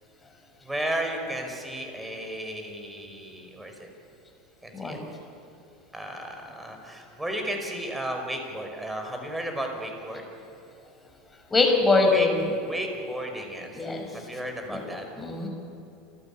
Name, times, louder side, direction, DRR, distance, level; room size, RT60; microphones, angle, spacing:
voice 1, 0.6-3.9 4.6-5.0 5.9-10.2 12.0-12.3 12.6-13.8 14.1-15.1, right 1 dB, 10° right, 3 dB, 5.1 m, -34 dB
voice 2, 11.5-12.3 13.7-14.1 14.7-14.8 15.2-15.5, left 3 dB, 15° left, 2 dB, 5.7 m, -22 dB
29.5 x 12.5 x 8.7 m, 2.8 s
hypercardioid pair, 80°, 0 cm